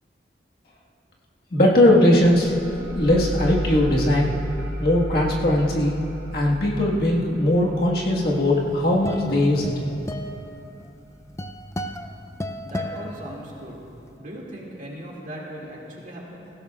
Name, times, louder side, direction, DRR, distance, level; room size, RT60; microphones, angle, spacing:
voice 1, 1.5-2.5 2.8-4.3 4.8-6.0 6.3-9.9, left 1 dB, 60° left, -4 dB, 1.7 m, -19 dB
sound 1, 2.1-11.3, equal, 80° right, 1.0 m, -34 dB
sound 2, 8.4-13.9, left 1 dB, 15° left, 0.4 m, -34 dB
voice 2, 12.6-13.8 14.2-16.5, equal, 45° right, -3 dB, 2.3 m, -38 dB
20.0 x 16.0 x 2.4 m, 2.9 s
head